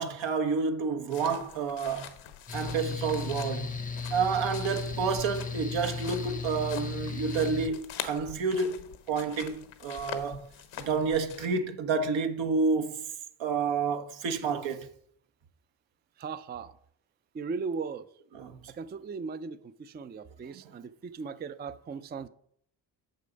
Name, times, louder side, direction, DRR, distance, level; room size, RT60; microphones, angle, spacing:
voice 1, 0.0-2.1 2.5-3.8 4.1-10.5 10.8-13.0 13.4-14.9 18.3-18.7 20.6-20.7, right 5 dB, 75° right, 1.2 m, -29 dB
sound 1, 1.1-11.5, left 10 dB, 90° left, 1.0 m, -45 dB
Mechanical fan, 2.5-7.7, left 4 dB, 20° left, 0.6 m, -35 dB
voice 2, 16.2-16.7 17.3-18.1 18.7-22.3, right 5 dB, 25° right, 0.4 m, -38 dB
6.8 x 6.6 x 5.2 m
cardioid pair, 70°, 47 cm